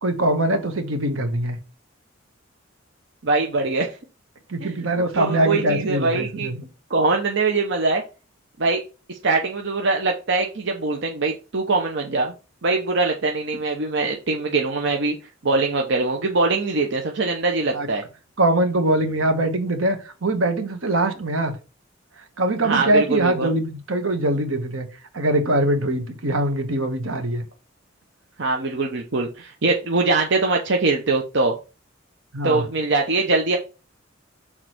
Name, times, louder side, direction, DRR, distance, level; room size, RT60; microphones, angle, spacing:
voice 1, 0.0-1.6 4.5-6.7 17.7-17.9 18.4-21.6 22.4-24.9 25.1-27.4 32.3-32.6, right 1 dB, 85° right, 1.3 m, -22 dB
voice 2, 3.2-3.9 4.6-4.9 5.1-6.5 6.9-8.0 8.6-8.8 9.1-12.3 12.6-15.2 15.4-18.0 22.6-23.5 28.4-31.6 32.4-33.6, right 3 dB, 65° right, 0.8 m, -22 dB
6.2 x 3.8 x 4.4 m
head